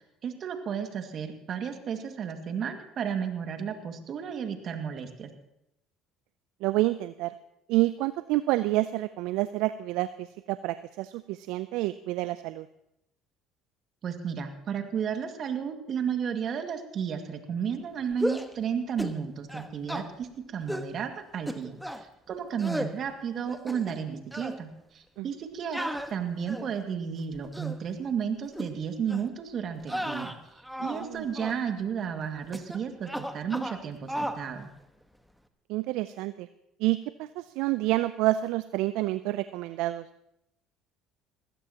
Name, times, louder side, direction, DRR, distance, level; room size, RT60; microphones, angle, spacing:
voice 1, 0.2-5.3 14.0-30.3 30.8-34.7, right 7 dB, 50° right, 6 dB, 2.0 m, -33 dB
voice 2, 6.6-7.3 7.7-12.7 25.2-25.3 30.8-31.3 35.7-36.5 36.8-40.1, right 17 dB, 70° right, 14 dB, 0.4 m, -28 dB
sound 1, 18.1-18.5 19.0-19.2 19.5-20.1 20.7-20.9 21.5-22.0 22.6-22.9 23.5-24.0 24.3-24.6 25.7-26.8 27.3-27.8 28.5-28.7 29.1-29.3 29.8-31.1 31.3-31.6 32.5-32.8 33.0-33.8 34.1-34.4, equal, ahead, 1.3 m, -34 dB
20.0 x 16.5 x 2.9 m, 0.83 s
hypercardioid pair, 65°, 0 cm